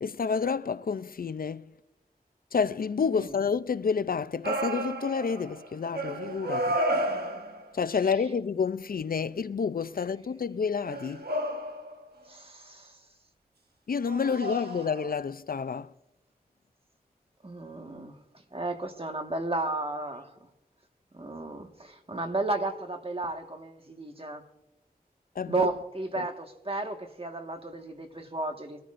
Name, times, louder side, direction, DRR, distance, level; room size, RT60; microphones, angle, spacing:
voice 1, 0.0-1.7 2.5-6.8 7.7-11.2 13.9-15.9 25.4-25.7 26.2-26.3, left 5 dB, 65° left, 0.4 m, -29 dB
sound 1, 4.4-5.7 5.9-7.7 10.9-12.0 14.0-15.1, right 1 dB, 85° right, 1.3 m, -32 dB
voice 2, 12.3-13.0 17.4-18.1 18.5-20.3 21.1-24.4 25.5-28.8, right 2 dB, 35° right, 1.6 m, -33 dB
23.5 x 14.0 x 2.5 m
wide cardioid pair, 55°, 16 cm